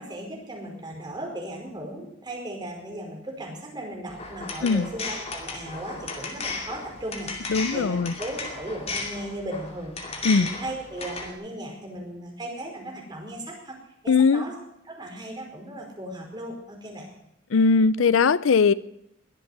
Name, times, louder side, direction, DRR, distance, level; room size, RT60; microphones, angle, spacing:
voice 1, 0.0-13.7 14.0-14.5 14.9-17.1, right 1 dB, 20° right, 0 dB, 4.9 m, -37 dB
sound 1, 4.1-11.3, left 3 dB, 30° left, 2.5 m, -35 dB
voice 2, 7.5-8.1 10.2-10.5 14.1-14.4 17.5-18.7, left 5 dB, 85° left, 19 dB, 0.5 m, -20 dB
21.5 x 8.1 x 8.1 m, 0.83 s
head